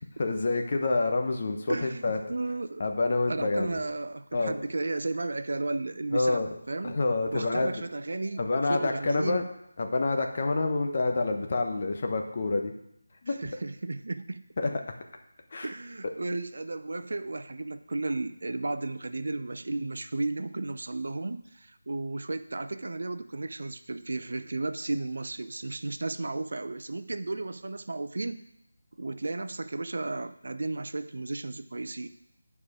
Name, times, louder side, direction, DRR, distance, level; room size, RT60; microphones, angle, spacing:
voice 1, 0.2-2.2 2.8-3.8 4.3-4.5 6.1-6.5 6.8-7.7 8.4-9.4 9.8-12.7 13.2-13.4 14.6-14.7 15.5-15.7, left 3 dB, 45° left, 4 dB, 1.0 m, -27 dB
voice 2, 1.7-2.9 3.3-7.0 7.3-9.5 13.3-14.4 15.6-28.4 29.0-32.1, right 2 dB, 65° right, 11 dB, 0.5 m, -34 dB
8.8 x 4.9 x 4.8 m, 0.78 s
figure-of-eight pair, 165°, 0 cm